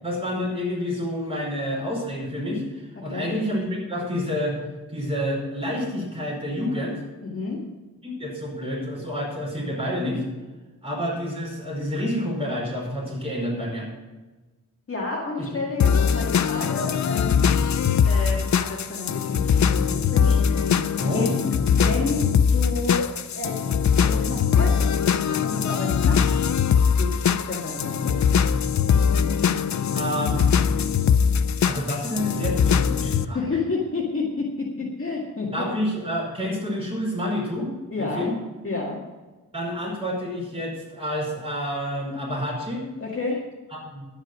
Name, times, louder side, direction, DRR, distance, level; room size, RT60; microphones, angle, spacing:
voice 1, 0.0-4.6 4.9-7.0 8.0-10.2 10.8-13.9 15.4-15.5 21.0-21.4 29.9-30.5 31.6-33.4 35.5-37.7 38.0-38.4 39.5-42.9 43.7-44.1, equal, 15° right, -4 dB, 5.2 m, -28 dB
voice 2, 7.2-7.6 14.9-17.4 18.0-20.7 21.0-23.1 23.3-23.6 24.0-24.9 25.4-26.3 27.0-28.2 33.3-35.7 37.9-38.3 38.6-39.0 43.0-43.4, left 3 dB, 40° left, -3 dB, 2.0 m, -30 dB
sound 1, 15.8-33.2, left 7 dB, 55° left, 0.5 m, -21 dB
11.0 x 9.6 x 6.2 m, 1.2 s
wide cardioid pair, 175°, 35 cm